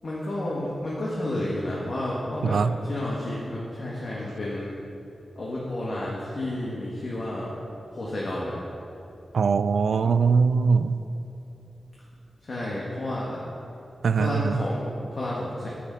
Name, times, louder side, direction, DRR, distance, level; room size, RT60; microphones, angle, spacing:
voice 1, 0.0-4.7 5.3-7.5 7.9-8.6 12.4-13.4 14.2-15.7, left 1 dB, 55° left, -5 dB, 1.6 m, -31 dB
voice 2, 2.4-2.8 9.3-11.0 14.0-14.6, right 5 dB, 85° right, 13 dB, 0.3 m, -22 dB
8.4 x 7.7 x 5.5 m, 2.9 s
wide cardioid pair, 75°, 0 cm